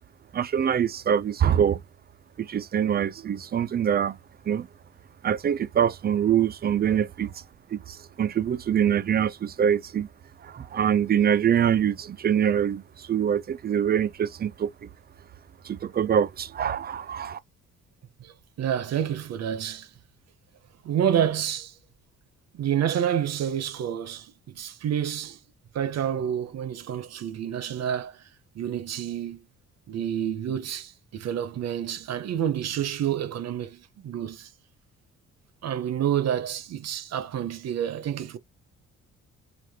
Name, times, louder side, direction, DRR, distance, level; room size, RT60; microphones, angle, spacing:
voice 1, 0.3-1.8 2.4-4.2 4.5-4.7 5.2-7.3 7.7-7.8 8.2-10.1 10.5-12.8 13.1-14.7 15.7-17.4, right 9 dB, 30° right, 0.4 m, -24 dB
voice 2, 18.6-19.9 20.8-21.7 22.5-25.4 25.7-28.2 28.6-29.4 29.9-34.5 35.6-38.4, right 9 dB, 60° right, 0.7 m, -28 dB
3.2 x 2.5 x 3.5 m
cardioid pair, 90°, 30 cm